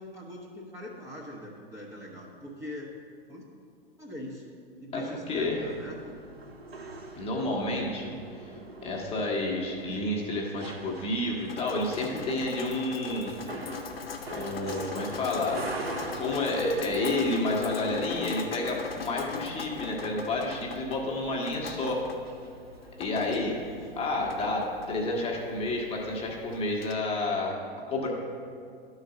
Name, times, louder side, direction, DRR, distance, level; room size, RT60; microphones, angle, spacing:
voice 1, 0.0-3.0 3.3-3.5 4.0-4.5 4.8-6.2 6.6-6.8 23.6-23.9, equal, 10° right, -4 dB, 0.9 m, -42 dB
sound 1, 5.2-24.8, right 2 dB, 85° right, 0.8 m, -45 dB
voice 2, 5.3-5.7 7.2-8.1 8.4-8.5 8.8-13.3 14.3-15.6 16.2-22.0 23.0-23.6 24.0-27.6 27.9-28.1, left 2 dB, 20° left, -1 dB, 1.1 m, -30 dB
Drip, 11.5-26.9, left 4 dB, 75° left, 0.7 m, -41 dB
12.0 x 4.0 x 5.4 m, 2.3 s
figure-of-eight pair, 100°, 30 cm